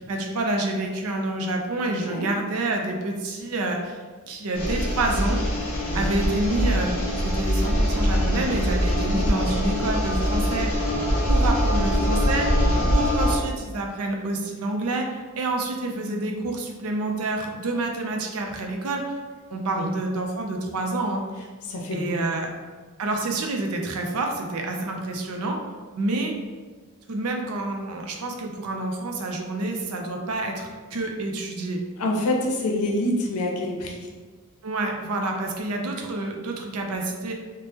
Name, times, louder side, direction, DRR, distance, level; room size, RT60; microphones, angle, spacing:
voice 1, 0.0-4.0 4.3-5.4 5.9-10.9 11.3-12.6 12.9-19.1 19.5-21.2 21.9-22.5 23.0-25.6 25.9-26.4 27.1-31.8 34.6-37.3, right 2 dB, 85° right, 2 dB, 0.5 m, -28 dB
sound 1, 4.5-13.4, equal, 45° left, 0.9 m, -23 dB
voice 2, 21.7-22.1 32.0-34.1, left 1 dB, 90° left, 0 dB, 0.6 m, -27 dB
2.8 x 2.1 x 3.3 m, 1.4 s
head